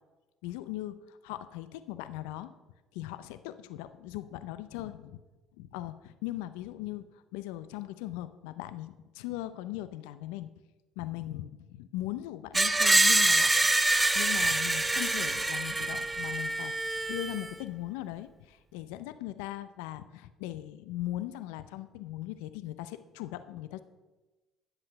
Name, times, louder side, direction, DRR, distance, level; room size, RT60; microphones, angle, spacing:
voice 1, 0.4-2.5 2.9-5.2 5.6-10.5 11.0-13.5 14.1-16.7 17.1-23.8, left 15 dB, 85° left, 12 dB, 0.5 m, -39 dB
Screech, 12.5-17.5, right 2 dB, 15° right, 0.6 m, -26 dB
10.5 x 7.8 x 5.8 m, 1.1 s
supercardioid pair, 70°, 0 cm